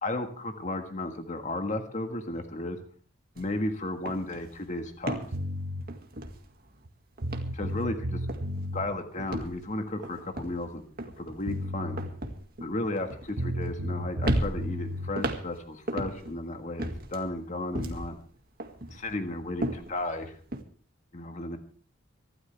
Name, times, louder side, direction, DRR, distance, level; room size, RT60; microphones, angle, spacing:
voice 1, 0.0-2.8 3.4-5.2 7.5-8.2 8.7-10.8 11.2-12.0 12.6-18.2 18.9-20.4 21.1-21.6, left 2 dB, 40° left, 5 dB, 1.7 m, -34 dB
sound 1, 3.3-3.6 3.8-6.8 7.2-8.0 8.3-8.7 9.2-13.9 14.2-16.4 16.8-18.2 18.6-20.6, right 1 dB, 50° right, 2.1 m, -35 dB
sound 2, 5.3-5.8 6.9-7.0 7.2-8.9 11.1-11.2 11.5-12.1 13.4-15.1, equal, 80° right, 1.4 m, -33 dB
25.0 x 12.5 x 3.5 m, 0.43 s
head